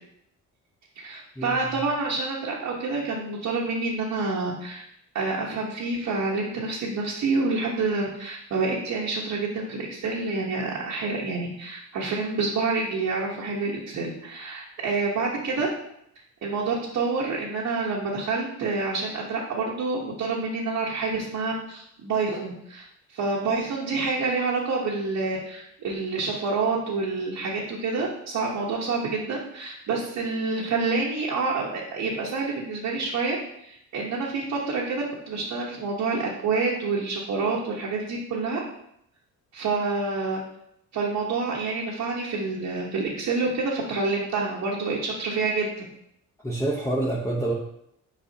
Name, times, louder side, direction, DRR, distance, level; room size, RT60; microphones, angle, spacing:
voice 1, 0.9-4.8 5.1-15.7 16.4-22.8 23.1-38.6 39.5-40.4 40.9-45.7, right 3 dB, 65° right, -4 dB, 1.2 m, -28 dB
voice 2, 46.4-47.5, right 2 dB, 10° left, -4 dB, 1.0 m, -26 dB
7.4 x 4.9 x 2.8 m, 0.76 s
cardioid pair, 90°, 31 cm